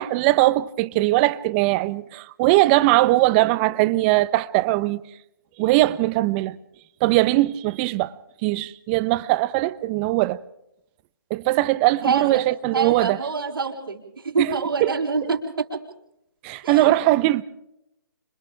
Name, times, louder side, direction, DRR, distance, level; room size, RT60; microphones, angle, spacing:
voice 1, 0.0-5.0 5.6-6.6 7.0-8.1 8.4-10.4 11.3-13.2 14.4-14.9 16.4-17.4, right 18 dB, 30° right, 1.0 m, -20 dB
voice 2, 12.0-12.4 12.7-15.8 16.6-16.9, right 4 dB, 80° right, 5.0 m, -26 dB
29.5 x 26.0 x 3.5 m
hypercardioid pair, 140°, 12 cm